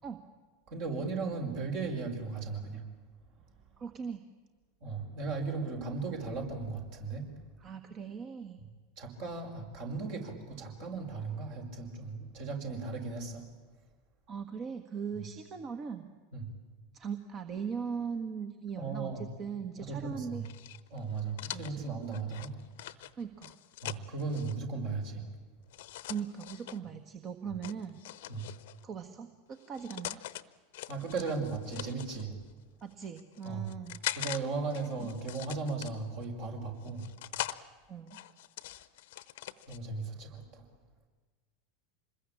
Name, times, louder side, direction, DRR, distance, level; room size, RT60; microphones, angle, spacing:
voice 1, 0.7-2.9 4.8-7.3 9.0-13.5 16.3-16.5 18.8-19.3 19.8-20.4 20.9-22.5 23.8-25.3 28.3-28.4 30.9-32.4 33.4-33.7 34.2-37.1 39.7-40.6, right 4 dB, 55° right, 2 dB, 5.3 m, -36 dB
voice 2, 3.8-4.2 7.6-8.6 14.3-16.1 16.9-20.4 21.5-21.9 23.2-23.6 26.1-28.0 28.8-30.2 32.8-34.0 35.0-35.1 37.9-38.2, right 6 dB, 35° right, 8 dB, 1.5 m, -39 dB
sound 1, 20.4-24.6 25.7-26.8 27.6-28.8 29.6-30.4 30.7-32.3 32.9-34.4 34.7-36.2 36.8-37.6 38.1-39.8, left 15 dB, 60° left, 0.9 m, -42 dB
26.5 x 21.0 x 8.8 m, 1.4 s
figure-of-eight pair, 85°, 0 cm